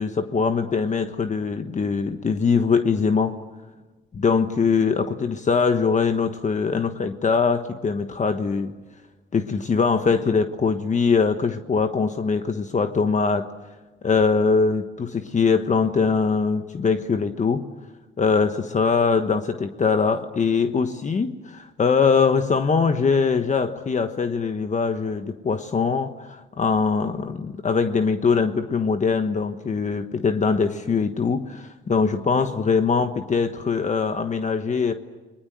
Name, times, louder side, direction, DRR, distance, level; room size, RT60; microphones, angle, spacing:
voice 1, 0.0-3.4 4.1-8.7 9.3-13.5 14.0-17.7 18.2-34.9, left 5 dB, 35° left, 8 dB, 1.3 m, -22 dB
29.5 x 21.0 x 7.7 m, 1.2 s
cardioid pair, 90°, 20 cm